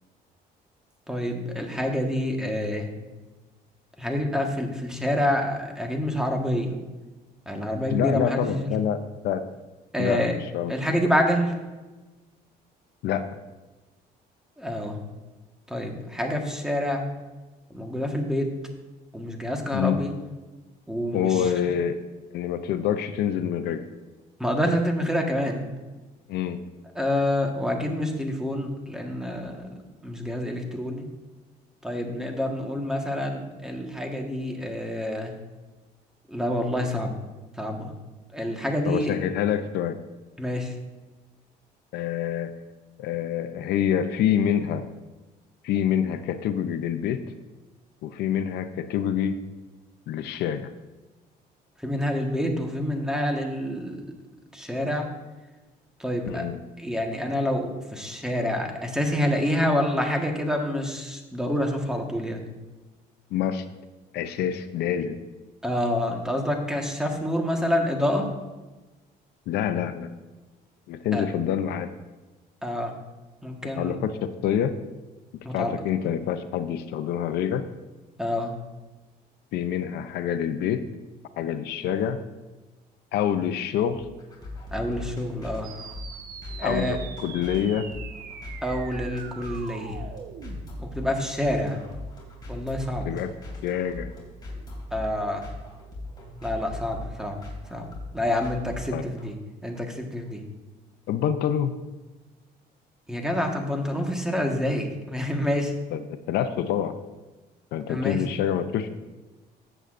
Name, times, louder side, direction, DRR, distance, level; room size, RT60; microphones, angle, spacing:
voice 1, 1.1-2.9 4.0-6.7 7.5-8.7 9.9-10.3 10.7-11.5 14.6-15.0 15.7-17.0 17.7-18.5 19.1-20.1 20.9-21.5 24.4-25.6 26.9-29.7 30.0-31.1 31.8-35.4 36.3-37.1 37.6-37.9 38.3-39.1 40.4-40.7 51.8-54.0 54.5-55.1 56.0-56.4 56.8-62.5 65.6-68.3 71.1-71.2 72.6-73.0 73.4-74.0 75.4-75.7 78.2-78.5 84.7-85.7 86.6-87.0 88.6-90.1 90.8-91.8 92.5-93.1 94.9-95.5 96.4-97.4 97.7-97.9 98.1-99.3 99.6-100.4 103.1-105.7 107.9-108.2, left 1 dB, 5° right, 2 dB, 1.4 m, -27 dB
voice 2, 7.9-9.0 9.2-9.5 10.0-10.7 11.0-11.2 13.0-13.3 19.7-20.0 21.1-22.0 22.3-23.8 26.3-26.6 38.9-40.0 41.9-42.5 43.0-44.8 45.6-47.3 48.0-49.4 50.1-50.7 56.3-56.6 63.3-63.6 64.1-65.2 69.5-70.1 70.9-71.9 73.8-74.7 75.5-77.7 79.5-80.9 81.4-82.2 83.1-84.0 86.6-87.9 93.1-93.3 93.6-94.1 98.9-99.1 101.1-101.8 105.9-107.0 107.7-109.0, left 9 dB, 75° left, 10 dB, 0.6 m, -26 dB
sound 1, 83.9-99.3, left 1 dB, 25° left, 2.9 m, -39 dB
sound 2, 85.6-90.6, right 6 dB, 60° right, 1.1 m, -42 dB
14.0 x 8.0 x 2.5 m, 1.2 s
cardioid pair, 110°, 17 cm